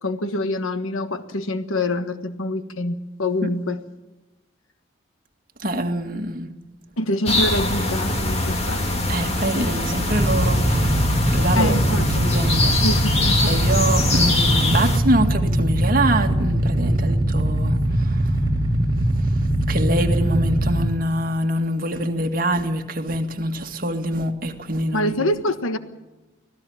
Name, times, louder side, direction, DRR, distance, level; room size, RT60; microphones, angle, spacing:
voice 1, 0.0-3.8 7.0-8.9 11.5-12.0 12.8-13.6 24.9-25.8, left 1 dB, 90° left, 1.4 m, -25 dB
voice 2, 5.6-6.5 9.1-12.8 13.4-18.4 19.2-19.4 19.7-25.3, right 1 dB, 45° right, 2.0 m, -25 dB
sound 1, 7.3-15.0, left 2 dB, 30° left, 2.5 m, -23 dB
Motorcycle / Idling, 10.1-20.8, right 1 dB, 20° right, 2.4 m, -21 dB
25.0 x 17.0 x 7.2 m
head